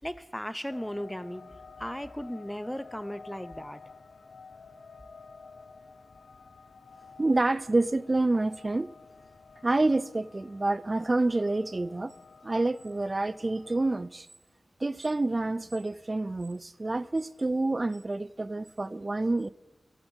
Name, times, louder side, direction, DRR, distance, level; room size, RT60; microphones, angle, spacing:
voice 1, 0.0-1.5 1.8-3.8, equal, 5° left, 0.7 m, -36 dB
sound 1, 0.7-14.1, left 4 dB, 85° left, 1.1 m, -51 dB
voice 2, 7.2-8.9 9.6-12.1 12.4-14.3 14.8-19.5, right 2 dB, 35° right, 0.5 m, -28 dB
16.0 x 12.5 x 7.1 m
wide cardioid pair, 70°, 0 cm